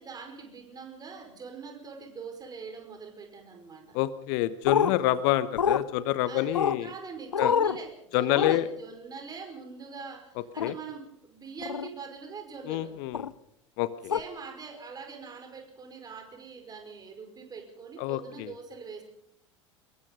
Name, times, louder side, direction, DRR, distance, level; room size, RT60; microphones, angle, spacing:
voice 1, 0.0-4.0 6.3-13.0 14.1-19.0, right 5 dB, 25° right, 5 dB, 5.2 m, -43 dB
voice 2, 3.9-6.9 7.4-7.5 8.1-8.7 10.6-10.7 12.7-13.3 13.8-14.1 18.0-18.5, left 14 dB, 50° left, 15 dB, 1.1 m, -27 dB
sound 1, 4.6-4.9 5.6-5.8 6.5-6.8 7.3-7.8 8.3-8.6 10.6-10.7 11.6-11.9 13.1-13.3 14.1-14.2, left 7 dB, 75° left, 0.7 m, -25 dB
24.5 x 21.5 x 5.4 m, 0.72 s
figure-of-eight pair, 75°, 16 cm